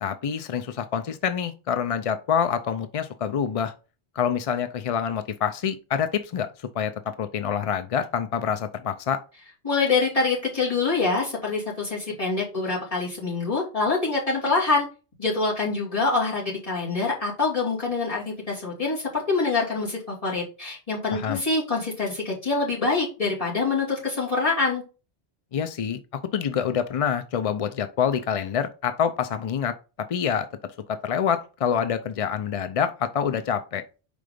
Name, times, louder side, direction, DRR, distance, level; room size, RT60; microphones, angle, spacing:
voice 1, 0.0-3.7 4.2-6.9 7.2-9.2 21.1-21.4 25.5-26.0 26.3-29.8 30.1-30.5 30.9-33.8, left 7 dB, 60° left, 10 dB, 0.3 m, -26 dB
voice 2, 9.6-14.9 15.2-24.8, left 3 dB, 30° left, -6 dB, 2.9 m, -25 dB
5.1 x 3.8 x 5.0 m, 0.33 s
omnidirectional pair, 1.2 m